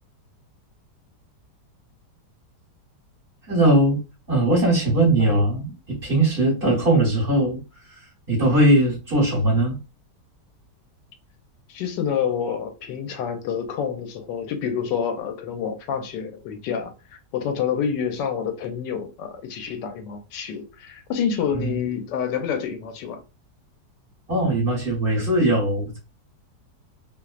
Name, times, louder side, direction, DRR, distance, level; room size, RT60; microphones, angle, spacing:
voice 1, 3.5-4.0 4.3-7.6 8.3-9.8 21.5-21.8 24.3-26.0, right 1 dB, 40° right, 1.2 m, -20 dB
voice 2, 11.7-23.2, left 7 dB, 85° left, 1.3 m, -28 dB
3.0 x 2.0 x 2.3 m
omnidirectional pair, 1.9 m